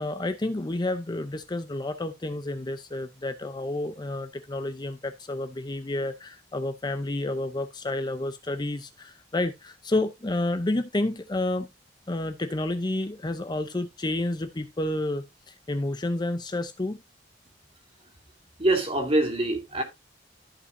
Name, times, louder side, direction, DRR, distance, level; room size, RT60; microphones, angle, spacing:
voice 1, 0.0-11.7 12.1-17.0, left 2 dB, 25° left, 0.6 m, -30 dB
voice 2, 18.6-19.8, right 2 dB, 30° right, 2.4 m, -24 dB
14.0 x 5.5 x 2.6 m
head